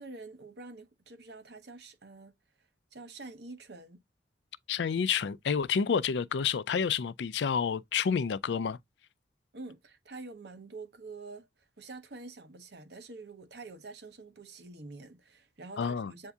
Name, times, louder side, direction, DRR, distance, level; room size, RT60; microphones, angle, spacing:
voice 1, 0.0-2.3 2.9-4.0 9.5-11.5 11.8-16.3, right 3 dB, 65° right, 0.8 m, -47 dB
voice 2, 4.7-8.8 15.8-16.1, left 6 dB, 75° left, 0.4 m, -29 dB
8.0 x 2.7 x 2.3 m
head